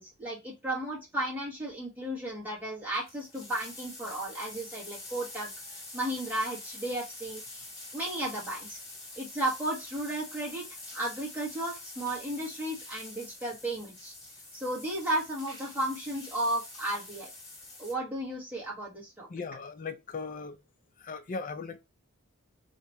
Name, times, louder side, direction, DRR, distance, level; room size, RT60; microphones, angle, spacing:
voice 1, 0.0-7.7 7.9-8.8 9.1-10.6 10.9-14.1 14.5-17.3 17.8-19.3, right 1 dB, 10° right, 1.4 m, -34 dB
sound 1, 2.8-17.9, left 2 dB, 20° left, 1.9 m, -46 dB
voice 2, 19.3-20.6 21.0-21.8, left 4 dB, 35° left, 0.5 m, -38 dB
2.8 x 2.8 x 4.4 m
head